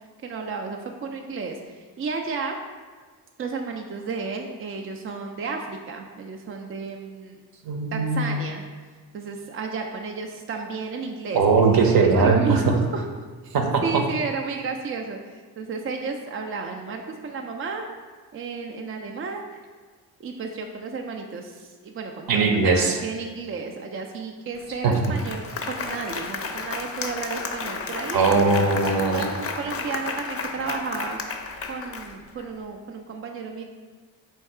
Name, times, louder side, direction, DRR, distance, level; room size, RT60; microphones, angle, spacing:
voice 1, 0.2-2.6 3.4-7.4 7.9-8.6 9.1-11.4 11.8-13.1 13.4-13.6 13.8-17.8 18.3-19.6 20.2-28.3 29.0-31.2 31.7-33.6, right 4 dB, 30° right, 3 dB, 0.4 m, -32 dB
voice 2, 7.6-8.4 11.3-12.6 13.5-14.0 22.3-23.0 24.8-24.9 28.1-29.3, right 4 dB, 50° right, 3 dB, 0.8 m, -20 dB
Applause, 24.6-24.7 24.9-32.5, left 4 dB, 35° left, 0.5 m, -33 dB
4.4 x 2.3 x 4.7 m, 1.5 s
supercardioid pair, 65°, 45 cm